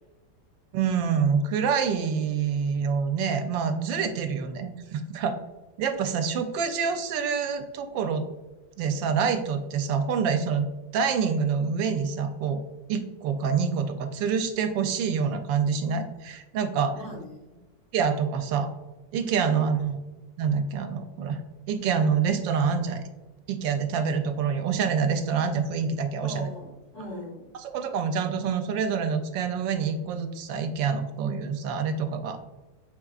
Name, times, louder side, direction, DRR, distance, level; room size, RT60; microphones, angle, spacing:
voice 1, 0.7-5.4 5.8-8.2 8.8-10.7 10.9-12.6 12.9-16.9 17.9-18.7 19.1-20.0 20.4-21.4 21.7-23.1 23.5-26.5 27.6-32.4, right 6 dB, 85° right, 8 dB, 1.3 m, -26 dB
voice 2, 16.9-17.5 19.5-19.6 26.2-27.5, left 1 dB, 60° left, -2 dB, 1.8 m, -40 dB
5.4 x 3.7 x 2.4 m, 1.1 s
omnidirectional pair, 2.0 m